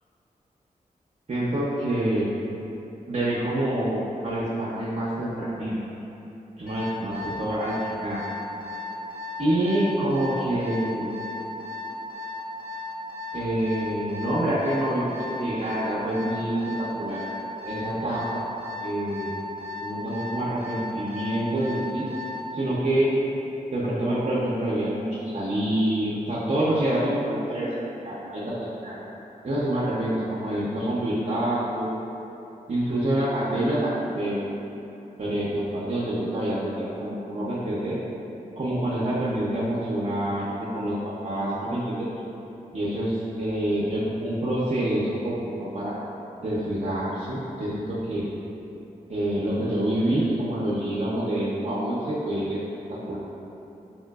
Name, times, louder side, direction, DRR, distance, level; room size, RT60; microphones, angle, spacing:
voice 1, 1.3-2.3 3.1-5.8 6.6-7.7 8.0-8.2 9.4-11.1 13.3-17.2 17.6-18.4 18.8-19.3 19.8-22.1 22.5-23.1 23.7-29.0 29.4-31.9 32.7-34.4 35.2-38.0 38.6-42.1 42.7-46.0 46.4-48.3 49.1-52.6 52.9-53.2, right 1 dB, 45° right, -9 dB, 0.6 m, -27 dB
Alarm, 6.7-22.5, left 3 dB, 70° left, 0.8 m, -36 dB
3.6 x 2.7 x 2.3 m, 2.9 s
cardioid pair, 45°, 16 cm